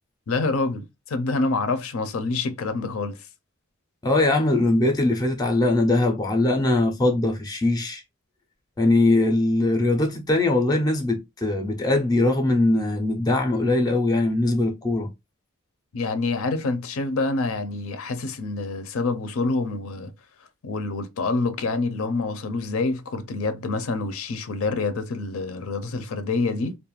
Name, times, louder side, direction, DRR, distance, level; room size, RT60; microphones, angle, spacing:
voice 1, 0.3-3.2 15.9-20.1 20.6-26.8, left 3 dB, 75° left, 0.5 m, -27 dB
voice 2, 4.0-8.0 8.8-15.1, left 2 dB, 15° left, 0.3 m, -21 dB
2.4 x 2.1 x 2.9 m
head